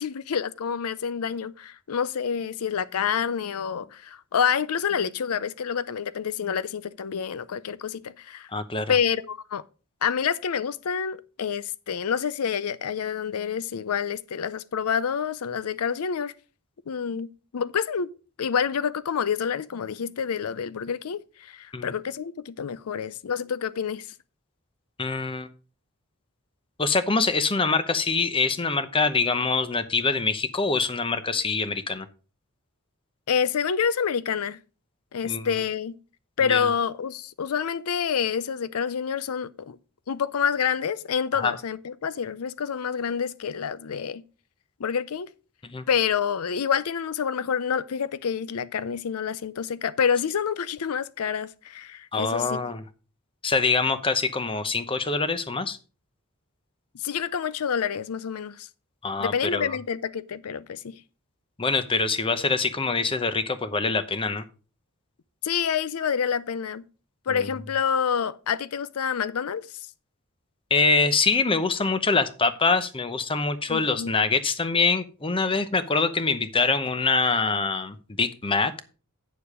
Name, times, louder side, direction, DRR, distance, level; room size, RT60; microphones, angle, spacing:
voice 1, 0.0-8.5 8.9-9.6 10.0-16.3 16.9-18.1 18.4-24.1 33.3-34.6 35.1-36.0 36.4-39.8 40.1-44.2 44.8-45.3 45.9-52.7 56.9-58.7 59.2-61.0 65.4-66.8 67.3-69.7 73.7-74.1, left 7 dB, 85° left, 0.5 m, -28 dB
voice 2, 8.5-8.9 21.7-21.9 25.0-25.5 26.8-32.1 35.2-35.6 36.5-36.7 41.3-41.5 45.6-45.8 52.1-52.8 53.4-55.8 59.0-59.8 61.6-64.4 67.3-67.5 70.7-78.8, left 4 dB, 25° left, 0.8 m, -24 dB
8.4 x 6.9 x 4.8 m
head